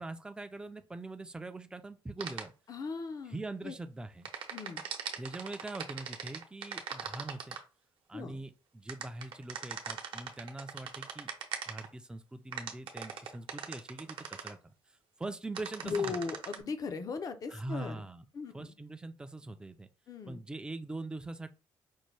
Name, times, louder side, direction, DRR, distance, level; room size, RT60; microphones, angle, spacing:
voice 1, 0.0-2.5 3.3-4.3 5.2-7.6 8.1-11.3 11.7-14.7 15.2-16.1 17.5-18.2 18.5-19.9 20.3-21.5, right 2 dB, 10° right, 0.4 m, -42 dB
sound 1, 2.2-2.4 4.3-7.6 8.9-11.9 12.5-14.5 15.5-16.6, right 7 dB, 70° right, 0.8 m, -40 dB
voice 2, 2.7-3.8 4.5-4.8 8.1-8.4 15.8-18.0 18.3-18.8 20.1-20.4, left 5 dB, 40° left, 0.6 m, -38 dB
5.3 x 2.2 x 3.1 m
cardioid pair, 135°, 9 cm